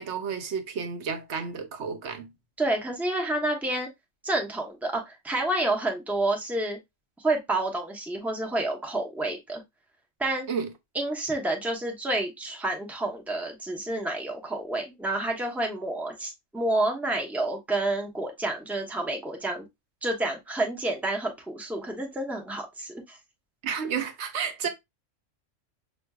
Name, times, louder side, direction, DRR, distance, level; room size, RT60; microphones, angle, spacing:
voice 1, 0.0-2.3 10.5-10.7 23.6-24.7, right 6 dB, 65° right, 1.0 m, -31 dB
voice 2, 2.6-3.9 4.2-6.8 7.2-9.6 10.2-10.4 10.9-19.7 20.0-23.2, right 2 dB, ahead, 0.8 m, -29 dB
6.0 x 2.5 x 2.3 m
omnidirectional pair, 1.3 m